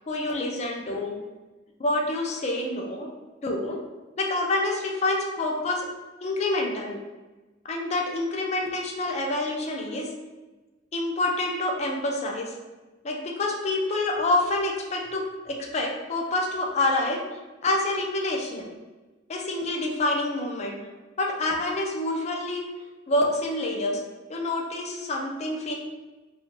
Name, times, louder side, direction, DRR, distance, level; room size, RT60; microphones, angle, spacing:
voice 1, 0.1-1.2 1.8-3.1 3.4-3.8 4.2-5.9 6.2-7.0 7.7-10.1 10.9-12.5 13.0-17.2 17.6-18.7 19.3-20.8 21.2-22.7 23.1-24.0 24.3-25.7, left 2 dB, 35° left, 1 dB, 0.4 m, -27 dB
2.3 x 2.2 x 2.9 m, 1.2 s
head